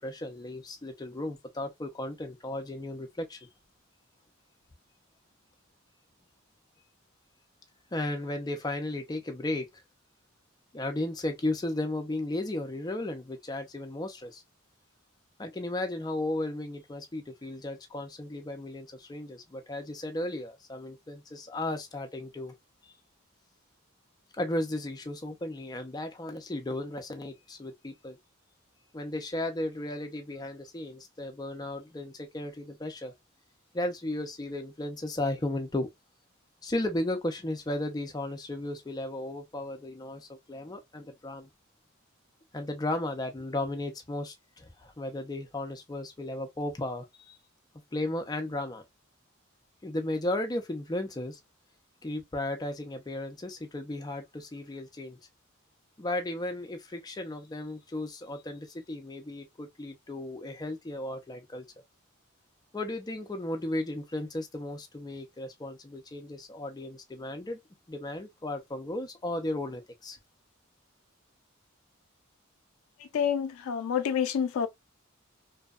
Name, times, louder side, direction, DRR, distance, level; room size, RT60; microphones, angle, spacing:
voice 1, 0.0-3.5 7.9-9.7 10.7-14.4 15.4-22.5 24.4-28.2 28.9-33.1 33.7-35.9 36.6-41.5 42.5-47.4 47.9-48.8 49.8-51.4 52.0-55.2 56.0-61.6 62.7-67.6 67.9-70.2, left 1 dB, 20° left, 0.5 m, -35 dB
voice 2, 73.0-74.7, left 7 dB, 85° left, 0.4 m, -28 dB
2.7 x 2.2 x 2.3 m
head